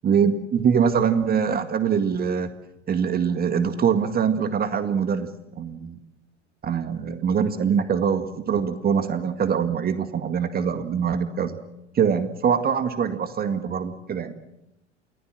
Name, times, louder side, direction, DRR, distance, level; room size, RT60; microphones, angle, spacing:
voice 1, 0.0-2.5 2.9-5.3 5.6-6.0 6.6-11.6 11.9-14.3, right 7 dB, 25° right, 9 dB, 1.9 m, -23 dB
29.0 x 19.0 x 7.6 m, 0.87 s
figure-of-eight pair, 85°, 36 cm